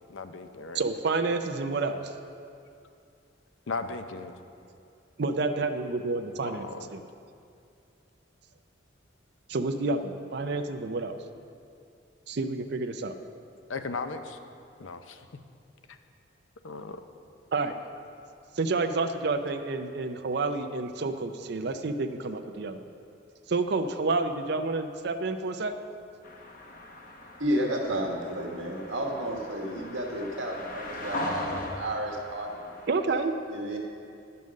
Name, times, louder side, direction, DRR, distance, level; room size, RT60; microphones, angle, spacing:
voice 1, 0.1-0.8 3.7-4.3 6.4-6.9 13.7-14.4 14.8-15.2 15.9-16.0 16.6-17.0, left 4 dB, 80° left, 8 dB, 0.6 m, -36 dB
voice 2, 0.7-2.1 5.2-7.0 9.5-11.2 12.3-13.2 17.5-17.8 18.6-22.8 23.5-25.8 32.9-33.4, right 3 dB, 55° right, 7 dB, 0.5 m, -29 dB
sound 1, 26.2-33.3, left 1 dB, 45° left, 0.8 m, -40 dB
voice 3, 27.4-32.7 33.5-33.8, right 1 dB, 85° right, 0 dB, 1.4 m, -32 dB
10.5 x 5.5 x 6.3 m, 2.4 s
head